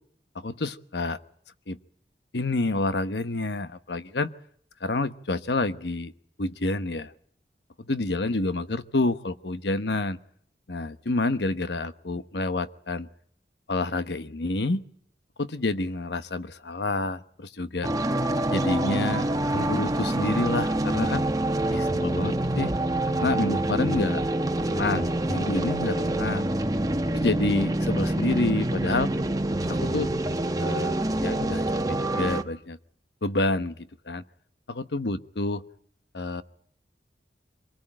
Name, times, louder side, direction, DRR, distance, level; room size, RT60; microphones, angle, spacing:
voice 1, 0.3-1.2 1.7-1.8 2.3-4.3 4.8-6.1 6.4-7.1 7.8-10.2 10.7-13.1 13.7-14.8 15.4-17.9 18.5-21.2 21.7-22.7 23.0-24.2 24.7-26.5 27.1-29.1 29.7-30.1 30.6-32.8 33.2-34.2 34.7-35.6 36.1-36.4, left 2 dB, 80° left, 13 dB, 1.1 m, -28 dB
sound 1, 17.8-32.4, right 1 dB, 20° right, 1.1 m, -26 dB
25.0 x 19.0 x 8.9 m, 0.66 s
head